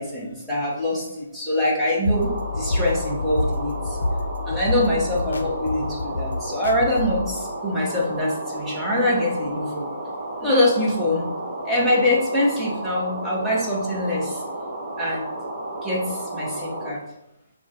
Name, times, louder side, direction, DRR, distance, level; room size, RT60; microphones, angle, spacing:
voice 1, 0.0-4.0 4.5-9.9 10.4-11.3 11.6-14.4 15.0-15.3 15.8-17.0, left 1 dB, 5° right, -8 dB, 1.4 m, -24 dB
sound 1, 2.1-7.3, left 2 dB, 75° left, 0.6 m, -28 dB
sound 2, 2.1-16.9, right 1 dB, 25° right, 1.6 m, -33 dB
5.9 x 2.4 x 3.8 m, 0.86 s
hypercardioid pair, 145°, 0 cm